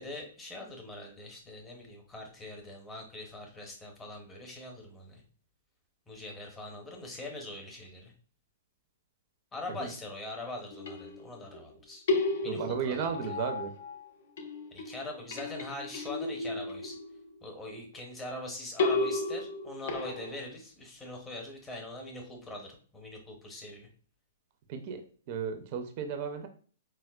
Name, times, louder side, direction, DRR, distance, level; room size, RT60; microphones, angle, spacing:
voice 1, 0.0-5.2 6.1-8.1 9.5-12.0 12.4-13.0 14.7-17.0 17.4-23.9, left 2 dB, 10° left, 1 dB, 0.8 m, -42 dB
sound 1, 10.7-11.6 12.1-14.1 14.4-17.4 18.8-20.5, left 3 dB, 65° left, 0.5 m, -33 dB
voice 2, 12.4-13.7 24.7-25.0 25.3-26.5, right 7 dB, 40° right, 6 dB, 0.4 m, -34 dB
4.3 x 2.1 x 2.2 m, 0.43 s
hypercardioid pair, 145°, 0 cm